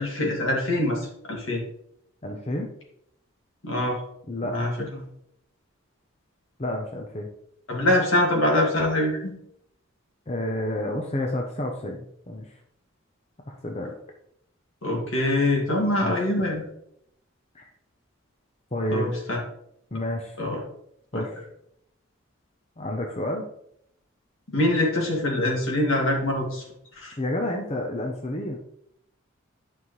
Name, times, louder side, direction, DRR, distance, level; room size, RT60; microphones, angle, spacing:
voice 1, 0.0-1.6 3.6-4.0 4.5-4.7 7.7-9.3 14.8-16.6 18.9-19.4 20.4-20.6 21.1-21.2 24.5-26.6 27.0-27.1, left 1 dB, 70° left, -1 dB, 2.3 m, -24 dB
voice 2, 2.2-2.7 4.3-4.6 6.6-7.3 10.3-12.6 13.5-14.0 15.8-16.2 17.5-17.7 18.7-19.1 19.9-20.4 21.1-21.5 22.8-23.5 27.2-28.6, left 1 dB, 30° left, 2 dB, 0.7 m, -30 dB
9.7 x 5.6 x 3.2 m, 0.73 s
head